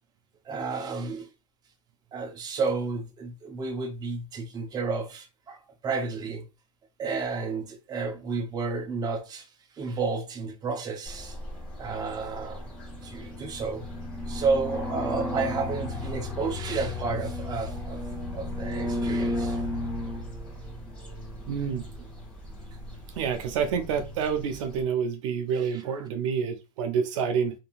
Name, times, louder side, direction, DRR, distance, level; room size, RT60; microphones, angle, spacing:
voice 1, 0.4-1.3 2.1-6.5 7.0-9.5 9.7-11.4 11.8-12.7 13.0-13.8 14.3-18.1 18.3-19.6 22.0-22.1 25.6-26.1, right 4 dB, 25° right, 0.6 m, -31 dB
sound 1, 11.1-24.8, left 1 dB, 5° left, 1.2 m, -35 dB
voice 2, 21.5-21.8 23.2-27.5, right 7 dB, 65° right, 0.5 m, -28 dB
2.7 x 2.5 x 2.3 m
hypercardioid pair, 115°, 17 cm